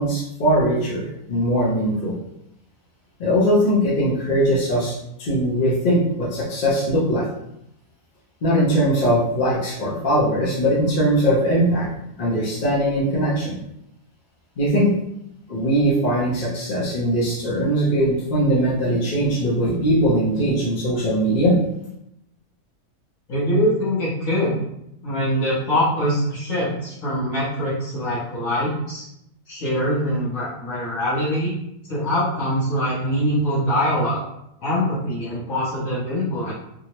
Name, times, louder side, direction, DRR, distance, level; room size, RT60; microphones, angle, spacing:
voice 1, 0.0-2.2 3.2-7.3 8.4-11.9 12.2-13.6 14.6-14.9 15.5-21.6, equal, 45° left, -6 dB, 0.7 m, -20 dB
voice 2, 23.3-24.6 25.0-29.1 29.5-31.5 31.9-34.2 34.6-36.5, equal, 65° left, -9 dB, 1.2 m, -23 dB
3.6 x 2.0 x 2.9 m, 0.80 s
omnidirectional pair, 1.6 m